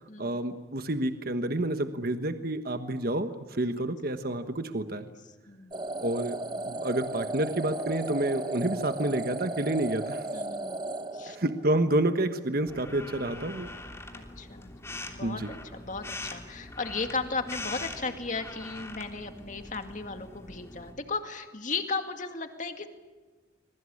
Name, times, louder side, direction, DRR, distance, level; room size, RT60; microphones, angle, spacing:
voice 1, 0.0-5.1 6.0-6.4 6.6-10.3 11.3-13.7 15.2-15.5, right 1 dB, 55° right, 8 dB, 1.3 m, -29 dB
voice 2, 5.5-5.8 10.3-10.8 11.1-11.4 14.1-22.9, left 4 dB, 45° left, 6 dB, 2.2 m, -35 dB
sound 1, 5.7-11.8, right 2 dB, 25° right, 0.9 m, -35 dB
sound 2, 12.7-20.9, left 2 dB, 15° left, 3.2 m, -42 dB
26.5 x 22.5 x 8.6 m, 1.2 s
head